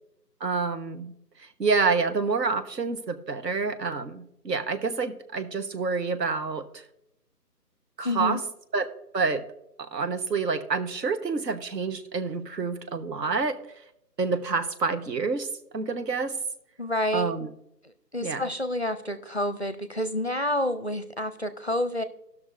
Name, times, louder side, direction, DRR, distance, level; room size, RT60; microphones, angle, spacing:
voice 1, 0.4-1.1 1.6-6.7 8.0-8.4 8.7-8.9 9.1-9.4 9.8-13.6 14.2-15.5 15.7-16.3 17.1-17.5 18.2-18.5, right 4 dB, 75° right, 9 dB, 1.1 m, -28 dB
voice 2, 8.0-8.4 16.8-17.3 18.1-22.0, left 1 dB, 45° left, 11 dB, 0.4 m, -28 dB
17.5 x 6.2 x 2.5 m, 0.80 s
figure-of-eight pair, 165°, 50 cm